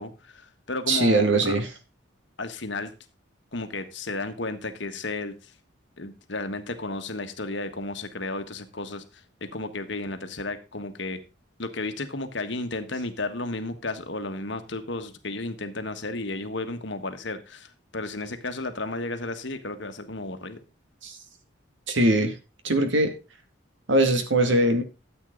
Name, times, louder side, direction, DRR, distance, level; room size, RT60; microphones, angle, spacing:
voice 1, 0.0-1.6 2.4-2.9 3.5-5.3 6.0-9.0 9.5-11.2 11.6-20.6, left 2 dB, 60° left, 8 dB, 1.5 m, -33 dB
voice 2, 0.9-1.7 21.0-21.2 21.9-22.4 22.6-23.1 23.9-24.8, right 1 dB, 70° right, 6 dB, 2.1 m, -21 dB
13.0 x 8.3 x 3.9 m, 0.29 s
head